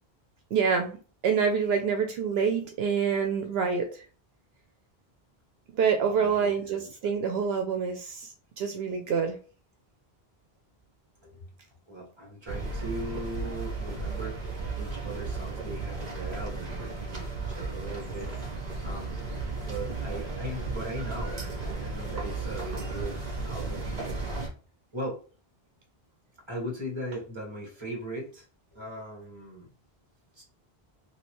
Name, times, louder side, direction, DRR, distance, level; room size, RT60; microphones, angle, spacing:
voice 1, 0.5-1.0 1.2-3.9 5.7-8.3 8.6-9.4, right 6 dB, 75° right, 4 dB, 0.8 m, -26 dB
voice 2, 6.1-6.8 11.2-11.5 11.9-18.3 18.8-19.1 19.6-23.2 23.4-23.9 24.9-25.2 26.5-28.4 28.7-29.7 30.3-30.4, right 1 dB, 25° right, -3 dB, 1.4 m, -39 dB
sound 1, 12.5-24.5, right 3 dB, 45° right, 1.0 m, -34 dB
3.1 x 2.9 x 3.0 m, 0.39 s
omnidirectional pair, 1.0 m